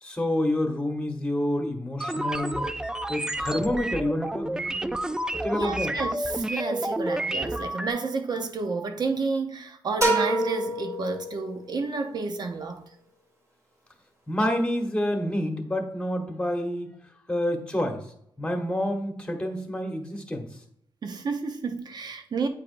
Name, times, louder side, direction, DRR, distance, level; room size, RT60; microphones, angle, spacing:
voice 1, 0.0-2.6 3.1-5.0 5.4-5.9 14.3-16.9 17.3-18.0 18.4-20.5, left 1 dB, 10° left, 1.2 m, -28 dB
sound 1, 2.0-7.9, right 1 dB, 10° right, 0.3 m, -30 dB
voice 2, 5.5-12.8 21.0-22.5, right 4 dB, 50° right, 0.7 m, -31 dB
sound 2, 10.0-11.8, right 1 dB, 35° right, 2.1 m, -26 dB
8.6 x 4.9 x 2.6 m
cardioid pair, 95°, 9 cm